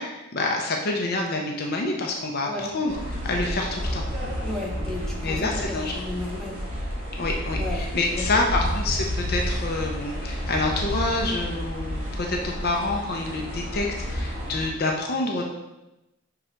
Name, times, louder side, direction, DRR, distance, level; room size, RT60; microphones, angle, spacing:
voice 1, 0.0-4.0 5.2-5.9 7.2-15.4, left 2 dB, 50° left, 1 dB, 0.6 m, -27 dB
sound 1, 2.9-14.7, equal, 30° right, 1.6 m, -30 dB
voice 2, 4.4-6.6 7.6-7.9 8.1-8.3, left 2 dB, ahead, -4 dB, 1.1 m, -34 dB
5.6 x 3.8 x 4.3 m, 0.96 s
head